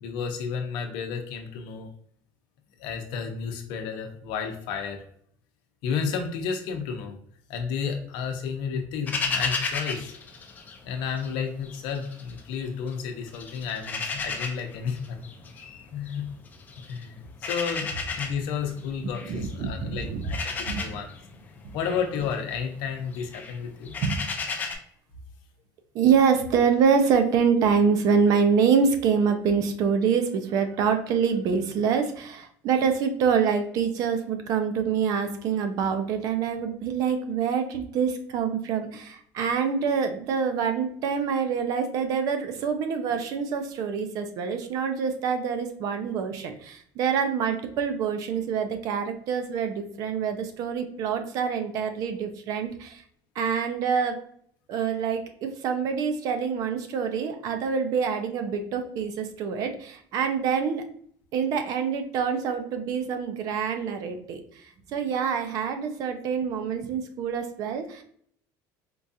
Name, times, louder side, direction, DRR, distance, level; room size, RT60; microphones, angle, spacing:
voice 1, 0.0-1.9 2.8-5.0 5.8-7.2 7.5-10.1 10.8-15.3 15.5-16.3 16.9-21.1 21.7-24.0, left 6 dB, 65° left, 4 dB, 0.7 m, -32 dB
sound 1, 9.1-11.3 11.6-12.9 13.3-24.7, left 4 dB, 20° left, 0.4 m, -34 dB
voice 2, 19.2-20.2 20.7-20.8 21.6-21.8 24.0-24.2 25.9-53.0 53.4-54.2 54.7-60.8 61.3-64.6 64.9-68.0, right 6 dB, 45° right, 7 dB, 0.5 m, -26 dB
4.5 x 2.4 x 2.6 m, 0.62 s
cardioid pair, 175°, 8 cm